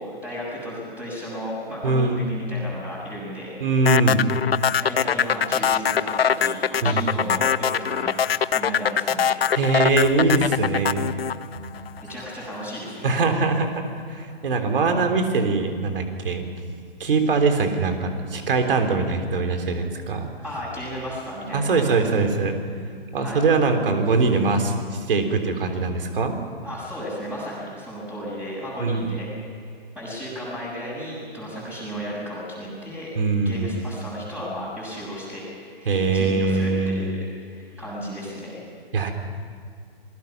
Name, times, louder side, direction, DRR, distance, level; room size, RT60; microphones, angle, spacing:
voice 1, 0.0-3.5 4.8-8.2 8.5-9.5 11.7-13.2 20.4-22.0 23.2-23.4 26.6-29.3 29.6-33.1 33.5-35.4 35.7-38.6, equal, 5° right, -6 dB, 7.0 m, -34 dB
voice 2, 1.8-2.3 3.6-4.2 6.8-7.1 9.5-11.1 13.0-13.8 14.1-16.5 17.0-20.3 21.5-22.6 23.1-26.4 28.8-29.2 33.2-33.7 35.9-37.1 38.9-39.1, right 3 dB, 65° right, 5 dB, 3.5 m, -22 dB
sound 1, 3.9-12.2, left 8 dB, 75° left, 0.8 m, -22 dB
27.0 x 21.0 x 6.0 m, 2.3 s
hypercardioid pair, 135°, 30 cm